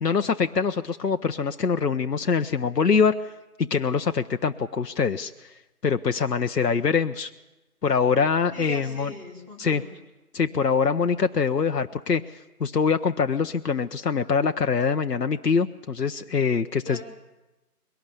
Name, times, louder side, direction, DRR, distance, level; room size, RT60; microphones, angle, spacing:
voice 1, 0.0-3.3 3.6-5.5 5.8-7.3 7.8-9.1 9.6-9.8 10.3-17.0, left 5 dB, 85° left, 8 dB, 0.8 m, -24 dB
voice 2, 8.5-10.0 16.8-17.0, equal, 20° right, -5 dB, 2.7 m, -40 dB
22.0 x 18.0 x 7.0 m, 1.0 s
figure-of-eight pair, 175°, 47 cm